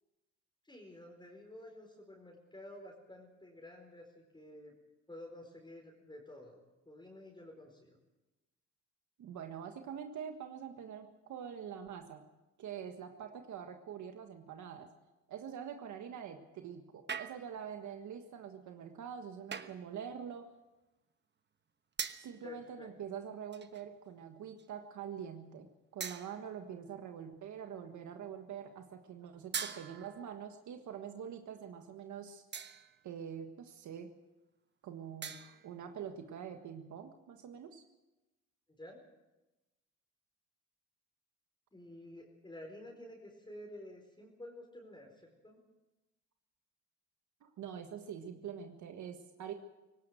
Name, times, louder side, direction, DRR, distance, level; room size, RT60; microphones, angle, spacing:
voice 1, 0.6-4.7 5.1-8.0 22.4-22.9 38.7-39.0 41.7-45.6, left 1 dB, 15° left, 0 dB, 4.6 m, -51 dB
voice 2, 9.2-12.2 12.6-14.9 15.3-20.5 22.2-25.7 25.9-32.4 33.0-34.1 34.8-37.8 47.4-49.5, right 8 dB, 75° right, 6 dB, 1.6 m, -45 dB
sound 1, 17.1-17.7 19.5-19.9 22.0-22.4 23.5-23.9 24.6-24.7 26.0-26.6 29.5-30.3 32.5-33.0 35.2-35.7, right 6 dB, 35° right, 1.2 m, -42 dB
18.0 x 18.0 x 7.9 m, 1.0 s
cardioid pair, 90°, 30 cm